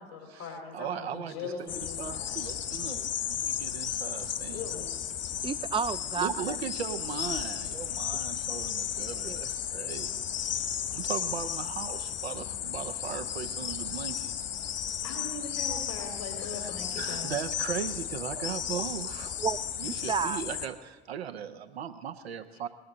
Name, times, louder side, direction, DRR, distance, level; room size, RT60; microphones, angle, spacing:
voice 1, 0.0-2.4 4.5-4.9 15.0-17.4, left 4 dB, 90° left, -1 dB, 3.7 m, -40 dB
voice 2, 0.7-4.7 6.2-10.2 10.9-14.3 16.6-16.7 17.0-19.4 19.8-22.7, right 8 dB, 85° right, 10 dB, 0.7 m, -38 dB
sound 1, 1.7-20.7, left 9 dB, 50° left, 1.6 m, -34 dB
voice 3, 5.4-6.6 8.1-8.2 9.2-9.4 18.4-18.5 19.4-20.4, right 6 dB, 15° right, 16 dB, 0.5 m, -32 dB
19.5 x 15.5 x 3.9 m, 1.2 s
figure-of-eight pair, 55°, 31 cm